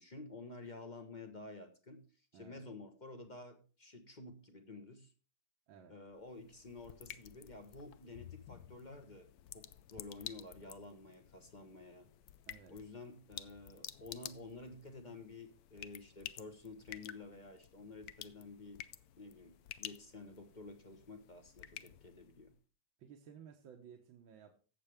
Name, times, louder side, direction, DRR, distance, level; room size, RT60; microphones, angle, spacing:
voice 1, 0.0-2.0 2.3-5.1 5.9-12.1 12.7-18.8 19.2-22.5, left 3 dB, 30° left, 7 dB, 1.0 m, -51 dB
voice 2, 2.3-2.6 5.7-5.9 12.5-12.7 23.0-24.6, right 8 dB, 80° right, 3 dB, 1.8 m, -56 dB
sound 1, 6.1-22.6, left 11 dB, 70° left, 0.9 m, -52 dB
15.5 x 6.8 x 3.5 m, 0.36 s
omnidirectional pair, 2.1 m